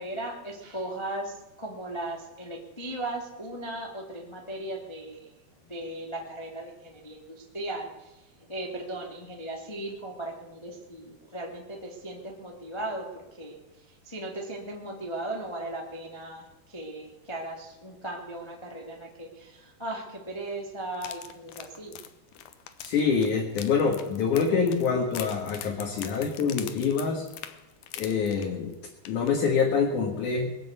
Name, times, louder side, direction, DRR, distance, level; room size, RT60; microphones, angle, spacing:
voice 1, 0.0-5.3 5.6-8.2 8.5-13.1 13.4-13.6 14.0-22.0, right 1 dB, 15° left, 0 dB, 1.1 m, -37 dB
sound 1, 20.9-28.7 29.1-29.3 29.6-29.7, left 11 dB, 75° left, 1.9 m, -43 dB
voice 2, 22.8-27.3 28.0-28.7 29.1-30.5, left 5 dB, 55° left, 1 dB, 2.7 m, -26 dB
21.5 x 8.0 x 8.1 m, 1.0 s
omnidirectional pair, 5.0 m